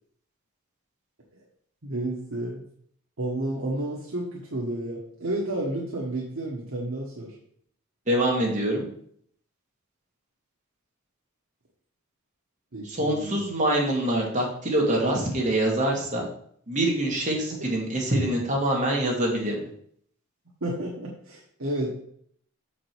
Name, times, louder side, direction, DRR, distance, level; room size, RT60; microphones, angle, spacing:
voice 1, 1.8-2.6 3.2-7.3 12.7-13.4 20.6-21.9, right 1 dB, 70° right, -4 dB, 1.4 m, -31 dB
voice 2, 8.1-8.9 12.8-16.3 16.7-19.6, right 1 dB, 35° right, -1 dB, 1.8 m, -25 dB
6.6 x 5.0 x 4.6 m, 0.64 s
head